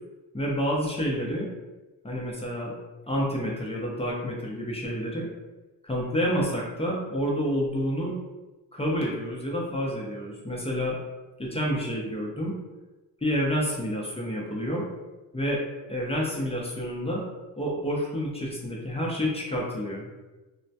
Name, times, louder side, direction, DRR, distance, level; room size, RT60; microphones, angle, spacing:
voice 1, 0.3-1.5 2.0-2.7 3.1-5.3 5.8-8.2 8.7-11.0 11.4-12.5 13.2-14.8 15.3-15.6 15.9-17.2 17.6-20.1, equal, 15° left, -3 dB, 0.6 m, -29 dB
2.1 x 2.1 x 2.7 m, 1.2 s
supercardioid pair, 60°, 42 cm